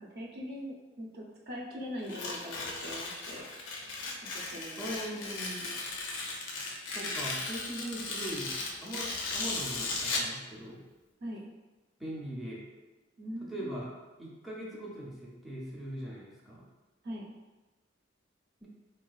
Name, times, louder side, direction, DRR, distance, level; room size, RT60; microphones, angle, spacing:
voice 1, 0.0-3.5 4.2-4.9 5.2-5.3 11.2-11.4 13.2-13.8 17.0-17.3, equal, 60° right, -2 dB, 0.6 m, -42 dB
Tearing, 2.0-10.4, left 3 dB, 70° left, 0.5 m, -36 dB
voice 2, 4.8-5.7 6.9-8.5 8.8-10.8 12.0-12.6 13.4-13.9 14.2-16.6 18.6-18.7, right 1 dB, ahead, -6 dB, 0.5 m, -40 dB
3.8 x 2.2 x 2.4 m, 1.2 s
head